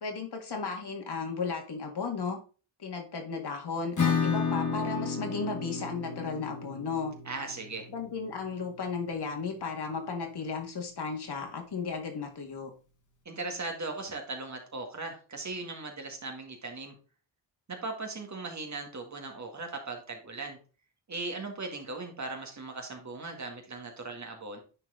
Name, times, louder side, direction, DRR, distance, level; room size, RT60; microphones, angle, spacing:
voice 1, 0.0-2.4 2.8-7.1 7.9-12.7, left 5 dB, 55° left, 3 dB, 2.0 m, -35 dB
Acoustic guitar / Strum, 4.0-9.4, left 5 dB, 40° left, 1.8 m, -33 dB
voice 2, 7.3-7.9 13.3-16.9 17.7-20.6 21.1-24.6, right 3 dB, 35° right, 3 dB, 2.0 m, -38 dB
9.9 x 4.5 x 3.8 m, 0.35 s
wide cardioid pair, 125°, 46 cm